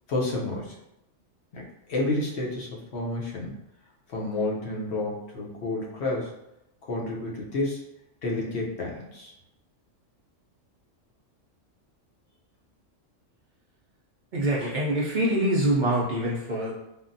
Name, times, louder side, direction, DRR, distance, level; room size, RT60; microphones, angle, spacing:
voice 1, 0.1-0.7 1.5-1.6 1.9-3.5 4.1-6.3 6.9-7.8 8.2-9.3, left 2 dB, 60° left, -2 dB, 0.9 m, -30 dB
voice 2, 14.3-16.7, right 1 dB, 60° right, -6 dB, 0.5 m, -25 dB
3.5 x 2.1 x 2.5 m, 0.85 s
omnidirectional pair, 1.3 m